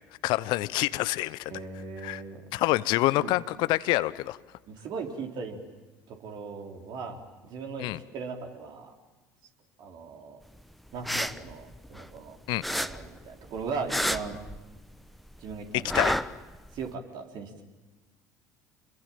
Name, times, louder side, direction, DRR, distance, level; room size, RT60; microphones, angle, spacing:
voice 1, 0.2-1.5 2.0-2.2 2.5-4.4 7.8-8.0 12.5-12.6 15.7-16.1, left 18 dB, 60° left, 17 dB, 0.8 m, -27 dB
voice 2, 1.5-2.4 3.2-3.3 4.7-5.6 6.1-9.0 9.8-10.4 10.9-12.4 12.7-14.4 15.4-16.1 16.7-17.6, right 4 dB, 55° right, 2 dB, 4.1 m, -38 dB
sound 1, 10.9-12.3 12.6-15.0 15.3-16.9, equal, ahead, 1.0 m, -30 dB
29.0 x 22.5 x 9.0 m, 1.2 s
hypercardioid pair, 65°, 9 cm